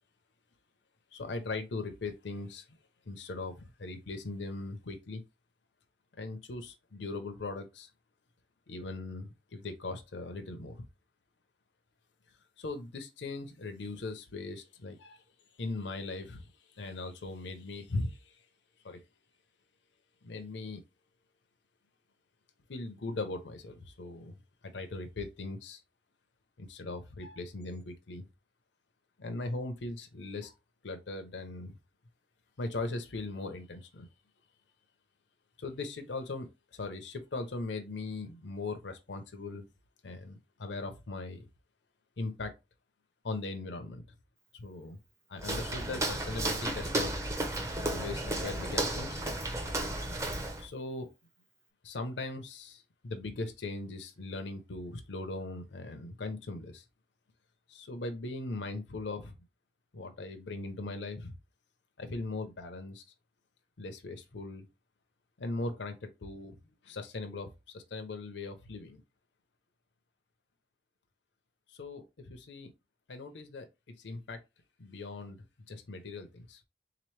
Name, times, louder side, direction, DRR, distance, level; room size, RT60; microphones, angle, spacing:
voice 1, 1.1-2.7 3.1-5.2 6.2-7.9 8.7-10.8 12.6-15.2 15.6-18.4 18.8-19.0 20.2-20.8 22.7-25.8 26.6-28.3 29.2-30.5 30.8-31.8 32.6-34.1 35.6-39.6 40.0-41.5 42.2-42.5 43.2-44.0 44.5-45.0 45.3-47.1 47.8-49.2 50.6-51.1 51.8-56.8 57.7-59.4 59.9-61.4 62.0-63.0 63.8-64.6 65.4-66.6 66.8-69.0 71.7-72.7 73.1-73.7 74.0-74.4 74.8-75.4 75.7-76.6, left 3 dB, 75° left, 0.6 m, -39 dB
Walk footsteps, 45.4-50.7, right 1 dB, 15° right, 0.6 m, -33 dB
3.8 x 2.9 x 3.2 m
head